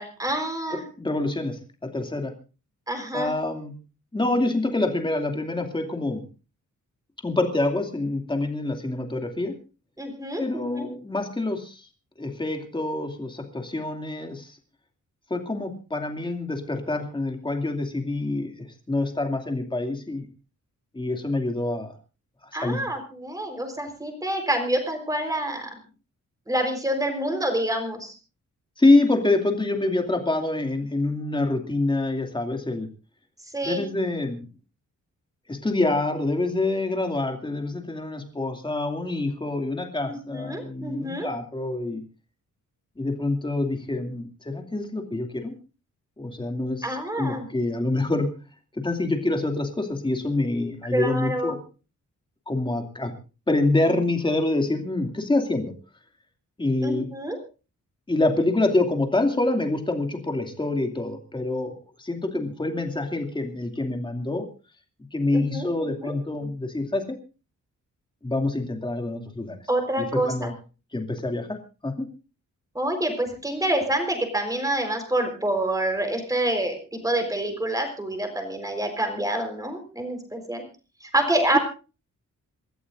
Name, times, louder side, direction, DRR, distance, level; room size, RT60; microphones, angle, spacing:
voice 1, 0.0-0.8 2.9-3.3 10.0-10.9 22.5-25.8 26.5-28.1 33.5-33.8 40.1-41.3 46.8-47.5 50.9-51.5 56.8-57.4 65.3-66.1 69.7-70.5 72.7-80.6 81.0-81.6, right 1 dB, 10° right, 5 dB, 4.3 m, -27 dB
voice 2, 1.0-2.3 3.1-3.7 4.1-6.2 7.2-9.5 10.4-11.9 12.2-14.6 15.3-18.5 18.9-20.3 20.9-21.9 22.6-22.8 28.8-32.9 33.7-34.5 35.5-42.0 43.0-45.5 46.2-48.3 48.7-51.6 52.5-53.1 53.5-55.7 56.6-57.1 58.1-61.7 62.0-64.5 65.1-67.2 68.2-69.6 70.0-70.5 70.9-71.6 71.8-72.1 81.5-81.6, left 2 dB, 15° left, 4 dB, 2.5 m, -26 dB
28.0 x 14.0 x 2.6 m, 0.33 s
wide cardioid pair, 150°, 31 cm